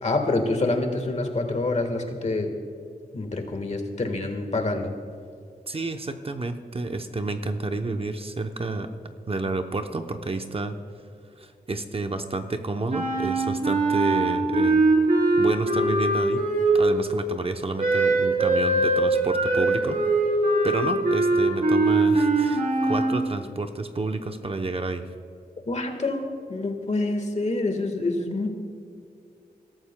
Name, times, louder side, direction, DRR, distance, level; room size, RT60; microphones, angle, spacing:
voice 1, 0.0-2.5 3.1-4.9 25.7-28.5, left 2 dB, 45° left, 5 dB, 1.4 m, -26 dB
voice 2, 5.7-8.9 9.3-10.7 11.4-14.8 15.4-16.4 16.7-20.0 20.6-25.0, right 3 dB, 35° right, 6 dB, 0.7 m, -30 dB
Wind instrument woodwind instrument, 12.9-17.1 17.8-23.2, right 2 dB, 60° right, 3.6 m, -22 dB
21.5 x 13.0 x 2.2 m, 2.3 s
wide cardioid pair, 110°, 16 cm